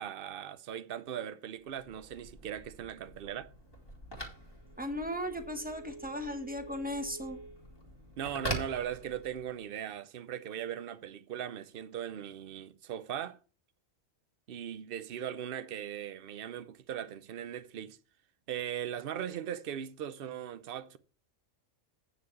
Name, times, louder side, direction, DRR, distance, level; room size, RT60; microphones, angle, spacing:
voice 1, 0.0-3.5 8.2-13.4 14.5-18.0 18.5-21.0, right 9 dB, 55° right, 0.8 m, -39 dB
Telephone, 1.8-9.6, right 1 dB, 20° left, 2.6 m, -44 dB
voice 2, 4.8-7.4, left 1 dB, 5° right, 1.1 m, -37 dB
9.4 x 4.6 x 7.0 m
omnidirectional pair, 1.4 m